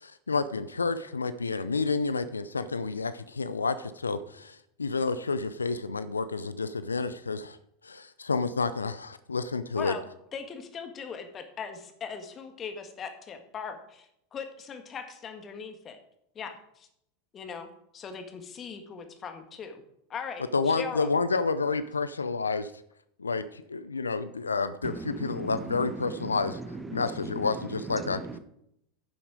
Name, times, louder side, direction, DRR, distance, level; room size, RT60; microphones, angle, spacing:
voice 1, 0.0-7.6 7.8-9.9 20.5-22.7 23.2-26.6 26.9-28.2, left 4 dB, 85° left, 13 dB, 0.5 m, -30 dB
voice 2, 10.3-16.0 16.4-16.9 17.3-19.8 20.1-21.1, left 6 dB, 30° left, 6 dB, 1.6 m, -40 dB
voice 3, 24.8-27.4 28.0-28.4, right 2 dB, 15° right, 10 dB, 1.0 m, -39 dB
10.5 x 7.0 x 4.9 m, 0.76 s
figure-of-eight pair, 85°, 0 cm